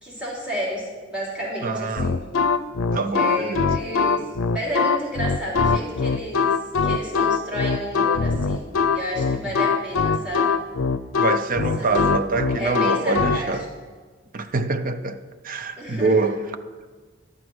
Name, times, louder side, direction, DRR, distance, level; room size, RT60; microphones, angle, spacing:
voice 1, 0.0-2.2 3.1-10.6 11.8-13.6 15.8-16.3, equal, 5° right, 3.3 m, -32 dB
voice 2, 1.6-2.2 2.9-3.8 11.2-13.7 14.3-15.2 15.4-16.4, right 3 dB, 45° right, 0.6 m, -25 dB
sound 1, 2.0-13.4, left 5 dB, 90° left, 0.5 m, -22 dB
11.5 x 7.9 x 6.2 m
head